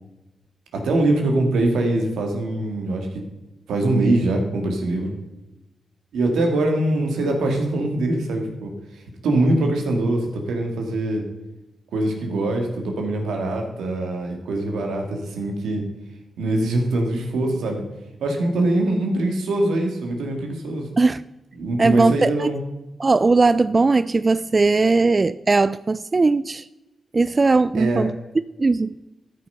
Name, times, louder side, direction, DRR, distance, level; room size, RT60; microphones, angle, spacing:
voice 1, 0.7-3.2 3.7-5.1 6.1-11.2 11.9-15.8 16.4-17.8 18.2-20.9 21.6-22.6 27.7-28.0, right 2 dB, 90° right, 3 dB, 2.0 m, -23 dB
voice 2, 21.8-22.5 23.0-26.7 27.1-28.1 28.6-28.9, right 3 dB, 40° right, 15 dB, 0.3 m, -18 dB
13.0 x 5.9 x 5.7 m, 1.0 s
cardioid pair, 55°, 0 cm